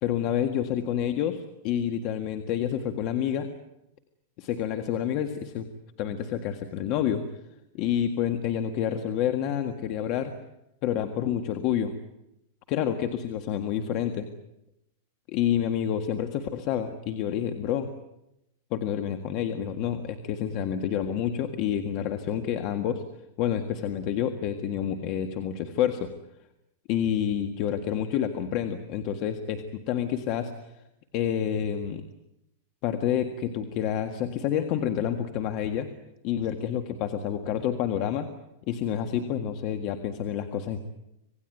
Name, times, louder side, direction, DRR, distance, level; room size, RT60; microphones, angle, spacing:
voice 1, 0.0-3.5 4.4-5.7 6.0-7.2 7.7-10.3 10.8-11.9 12.7-14.3 15.3-17.9 18.7-23.0 23.4-26.1 26.9-30.7 31.1-32.0 32.8-35.9 36.2-38.3 38.7-40.8, left 9 dB, 40° left, 7 dB, 1.8 m, -28 dB
26.5 x 18.0 x 9.2 m, 0.86 s
supercardioid pair, 155°, 0 cm